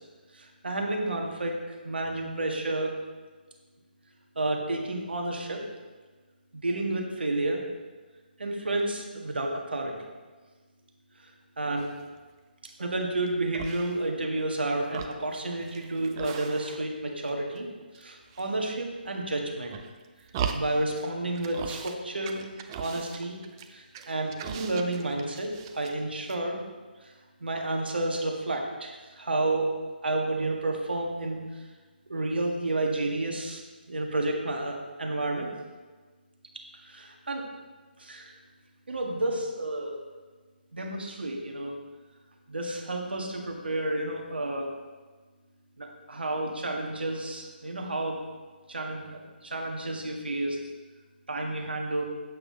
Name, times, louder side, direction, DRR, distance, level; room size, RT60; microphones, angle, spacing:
voice 1, 0.3-1.5 1.8-2.9 4.3-5.6 6.5-7.6 8.4-10.0 11.2-11.3 11.6-11.9 12.8-17.7 18.0-19.8 20.5-22.4 22.8-23.4 23.7-26.6 27.0-27.1 27.4-29.8 30.0-31.6 32.1-33.6 33.9-35.5 36.8-37.5 38.0-38.3 38.9-39.9 40.7-41.8 42.5-44.7 45.8-48.2 48.7-50.6 51.3-52.1, right 2 dB, 75° right, 1 dB, 1.6 m, -31 dB
sound 1, 11.8-12.2 12.7-13.3 13.5-14.5 14.8-17.0 17.3-18.0 18.3-19.1 19.6-21.1 21.3-22.0 22.2-26.0 26.2-26.4, right 7 dB, 25° right, 0.5 m, -39 dB
8.4 x 7.6 x 3.9 m, 1.3 s
figure-of-eight pair, 145°, 6 cm